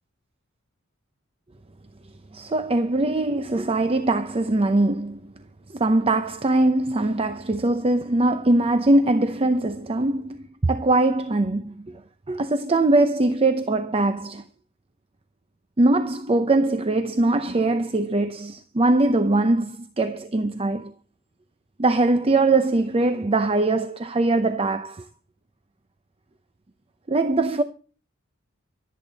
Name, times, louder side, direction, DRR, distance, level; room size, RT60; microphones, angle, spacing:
voice 1, 2.3-5.3 5.7-12.0 12.3-14.4 15.8-20.9 21.8-25.0 27.1-27.6, right 2 dB, 30° right, 0.6 m, -22 dB
24.0 x 8.5 x 4.1 m
head